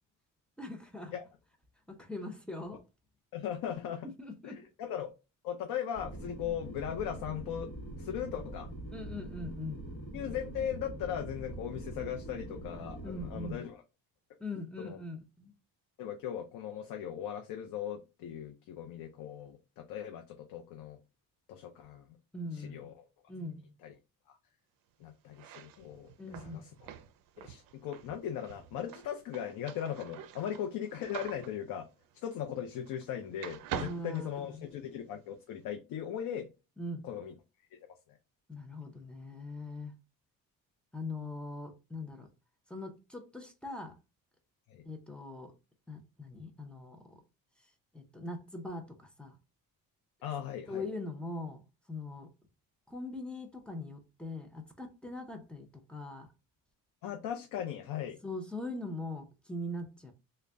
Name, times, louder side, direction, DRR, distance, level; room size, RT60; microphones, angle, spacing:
voice 1, 0.6-1.2 1.9-2.8 4.0-4.6 8.9-9.8 13.0-13.6 14.4-15.5 22.3-22.9 23.3-23.7 26.2-26.7 33.7-34.7 36.8-37.0 38.5-39.9 40.9-42.3 42.7-43.9 44.8-45.5 45.9-47.2 47.9-49.4 50.7-52.3 52.9-56.3 58.2-60.1, left 2 dB, 5° left, 0.5 m, -41 dB
voice 2, 3.3-4.1 4.4-5.1 5.4-7.7 8.0-8.7 10.1-13.8 14.8-15.0 16.0-21.0 21.5-22.2 22.5-23.1 23.8-23.9 24.3-24.4 25.0-26.9 27.4-31.9 32.2-36.5 37.0-37.3 37.9-38.2 44.7-44.8 50.2-50.9 57.0-58.2, left 9 dB, 85° left, 0.6 m, -38 dB
sound 1, 5.9-13.5, right 1 dB, 35° left, 1.1 m, -43 dB
sound 2, 25.3-33.1 33.4-35.0, right 9 dB, 75° right, 0.5 m, -45 dB
3.8 x 2.2 x 3.3 m
cardioid pair, 175°, 33 cm